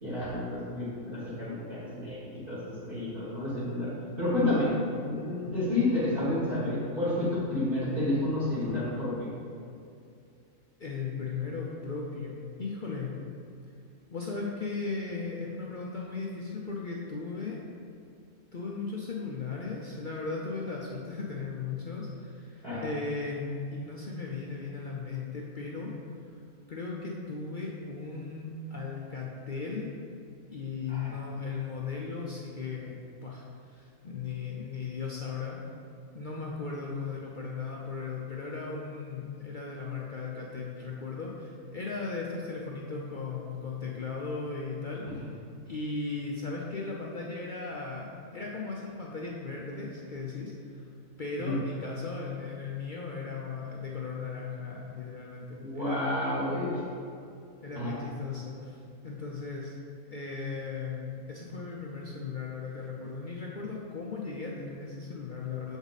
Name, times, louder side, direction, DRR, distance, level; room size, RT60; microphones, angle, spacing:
voice 1, 0.0-2.2 2.5-2.6 2.9-3.9 4.2-4.7 5.0-9.3 22.6-22.8 30.9-31.1 45.0-45.2 51.4-51.6 55.6-56.8 57.8-57.9, left 1 dB, 40° right, -10 dB, 1.9 m, -30 dB
voice 2, 10.8-13.1 14.1-17.6 18.5-25.9 26.7-29.9 30.5-35.6 36.1-45.0 45.7-50.8 51.2-56.0 57.6-59.7 60.0-65.8, left 4 dB, 50° left, -3 dB, 0.6 m, -37 dB
7.1 x 5.4 x 4.0 m, 2.5 s
omnidirectional pair, 1.4 m